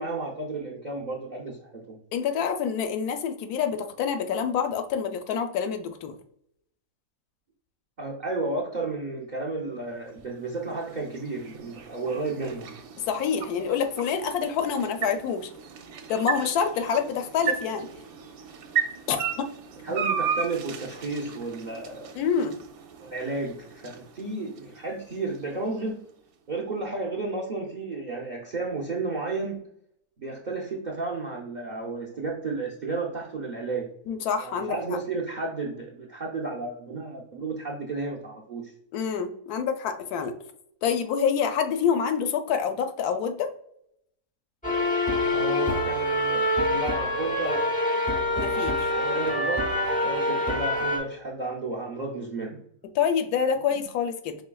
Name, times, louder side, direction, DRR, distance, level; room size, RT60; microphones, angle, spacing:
voice 1, 0.0-2.0 8.0-12.7 19.8-22.1 23.0-26.0 26.5-29.7 30.2-33.9 34.4-38.7 45.3-47.8 48.9-52.6, right 3 dB, 55° right, -1 dB, 0.5 m, -32 dB
voice 2, 2.1-6.2 13.1-15.5 16.1-17.9 19.1-19.5 19.9-20.0 22.2-22.5 34.1-35.0 38.9-40.3 40.8-43.5 48.4-48.9 53.0-54.4, left 7 dB, 80° left, 8 dB, 1.1 m, -27 dB
sound 1, 9.9-26.1, right 7 dB, 70° right, 1.0 m, -36 dB
sound 2, 44.6-51.0, left 1 dB, 10° left, 0.5 m, -25 dB
5.4 x 3.5 x 2.2 m, 0.71 s
omnidirectional pair, 1.7 m